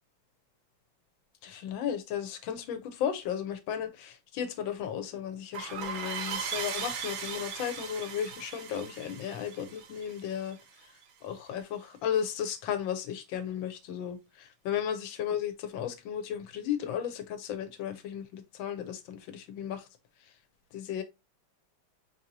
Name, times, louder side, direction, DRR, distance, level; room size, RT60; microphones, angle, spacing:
voice 1, 1.4-10.6 11.2-19.8 20.7-21.0, left 9 dB, 75° left, 1.3 m, -34 dB
sound 1, 5.5-10.8, right 6 dB, 80° right, 1.5 m, -38 dB
4.3 x 2.7 x 2.6 m
omnidirectional pair, 2.2 m